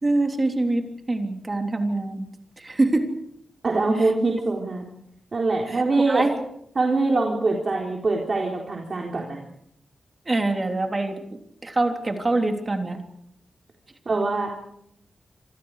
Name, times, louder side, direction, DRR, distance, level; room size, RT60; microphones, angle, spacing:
voice 1, 0.0-2.3 2.6-3.1 4.0-4.1 5.7-6.4 10.2-13.0, right 2 dB, 25° right, 4 dB, 3.4 m, -25 dB
voice 2, 3.6-4.8 5.3-6.3 6.8-9.4 14.1-14.7, right 3 dB, 40° right, 0 dB, 4.0 m, -23 dB
27.0 x 26.5 x 4.9 m, 0.72 s
wide cardioid pair, 130°, 0 cm